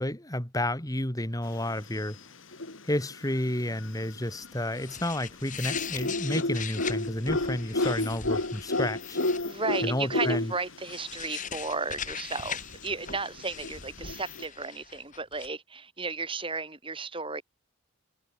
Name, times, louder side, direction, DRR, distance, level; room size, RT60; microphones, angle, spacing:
voice 1, 0.0-2.2 2.8-9.2 9.8-10.5, left 1 dB, 15° left, 2.8 m, -31 dB
sound 1, 1.7-2.2 2.5-4.5 4.9-10.9 11.2-11.3 11.5-11.6 12.1-14.5, left 2 dB, 70° left, 2.7 m, -31 dB
sound 2, 4.6-9.8 10.7-15.5, left 7 dB, 40° left, 6.9 m, -40 dB
voice 2, 9.4-17.4, right 4 dB, 25° right, 7.2 m, -34 dB
head